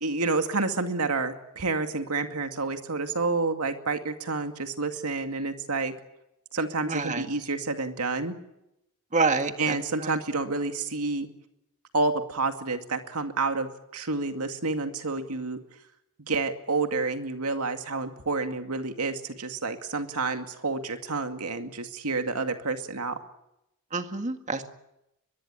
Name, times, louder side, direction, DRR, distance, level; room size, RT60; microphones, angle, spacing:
voice 1, 0.0-5.9 6.5-8.4 9.6-11.3 11.9-15.6 16.3-23.2, right 3 dB, 85° right, 6 dB, 2.3 m, -29 dB
voice 2, 6.8-7.3 9.1-9.8 10.0-10.2 23.9-24.7, right 4 dB, 35° right, 7 dB, 1.9 m, -27 dB
23.0 x 22.5 x 8.8 m, 0.86 s
head